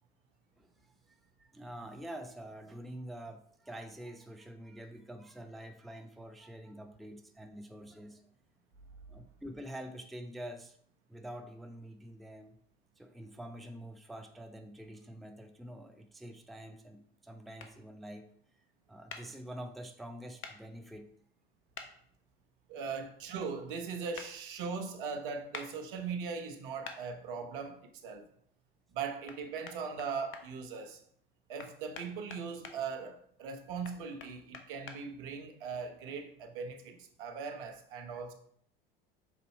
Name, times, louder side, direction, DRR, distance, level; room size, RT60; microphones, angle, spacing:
voice 1, 0.6-8.3 9.1-10.8 11.1-12.6 13.0-18.3 18.9-21.1, right 1 dB, ahead, 0.5 m, -46 dB
sound 1, 17.6-17.7 19.1-19.2 20.4-20.5 21.7-21.9 24.1-24.3 25.5-25.7 26.8-27.0 29.3-29.4 29.6-30.4 31.6-32.8 33.8-35.0, left 5 dB, 40° left, 1.0 m, -45 dB
voice 2, 22.7-28.3 28.9-31.0 31.5-38.3, right 5 dB, 65° right, 1.0 m, -39 dB
6.2 x 4.0 x 4.3 m
figure-of-eight pair, 70°, 29 cm